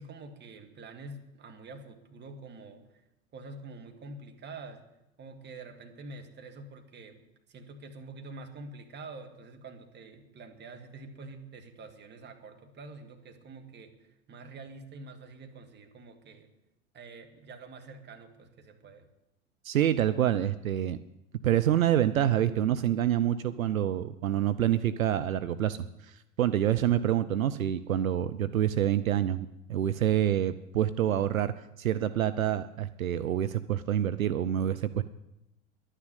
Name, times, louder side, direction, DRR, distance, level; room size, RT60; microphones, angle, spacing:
voice 1, 0.0-2.8 3.3-4.8 5.2-7.2 7.5-16.5 16.9-19.1, right 3 dB, 25° right, 4 dB, 2.0 m, -46 dB
voice 2, 19.6-21.0 21.4-25.8 26.1-31.5 31.8-35.0, right 11 dB, 75° right, 13 dB, 0.7 m, -27 dB
11.0 x 9.9 x 8.3 m, 0.88 s
figure-of-eight pair, 90°, 41 cm